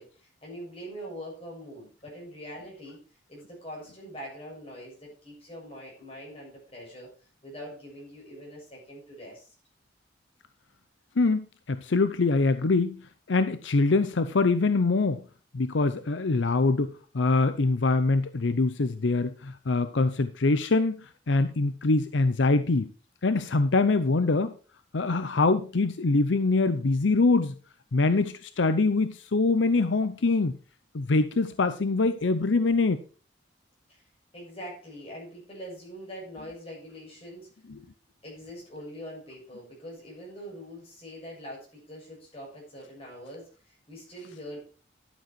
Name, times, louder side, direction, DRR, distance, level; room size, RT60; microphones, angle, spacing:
voice 1, 0.0-3.0 3.3-7.1 7.4-9.5 33.9-34.0 34.3-37.5 38.2-44.6, equal, 30° left, -2 dB, 6.9 m, -43 dB
voice 2, 11.2-13.0 13.3-15.2 15.5-22.9 23.2-24.5 24.9-27.5 27.9-30.5 30.9-33.0, left 3 dB, 80° left, 11 dB, 0.7 m, -24 dB
12.0 x 7.6 x 4.6 m, 0.38 s
head